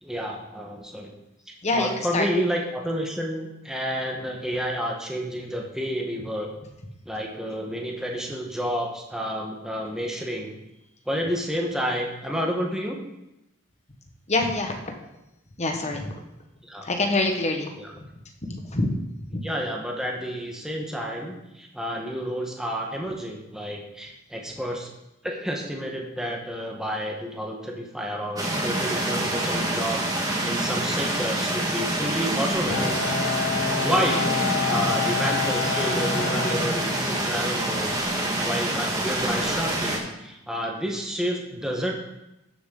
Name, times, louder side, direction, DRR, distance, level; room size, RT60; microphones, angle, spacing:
voice 1, 0.0-1.1 1.7-6.5 7.1-10.6 11.1-13.0 16.6-16.9 17.8-17.9 19.4-24.9 25.2-30.0 30.4-33.0 33.8-38.0 38.4-41.9, equal, 5° right, 0 dB, 1.2 m, -30 dB
voice 2, 1.6-2.3 14.3-14.9 15.6-16.2 16.8-17.7 18.0-18.1 18.5-18.9 19.3-19.5 34.1-34.2, left 2 dB, 35° left, 4 dB, 1.3 m, -26 dB
sound 1, 28.4-40.0, right 1 dB, 20° right, 1.7 m, -26 dB
Bowed string instrument, 32.7-37.5, left 6 dB, 65° left, 1.1 m, -29 dB
12.0 x 7.1 x 3.9 m, 0.91 s
head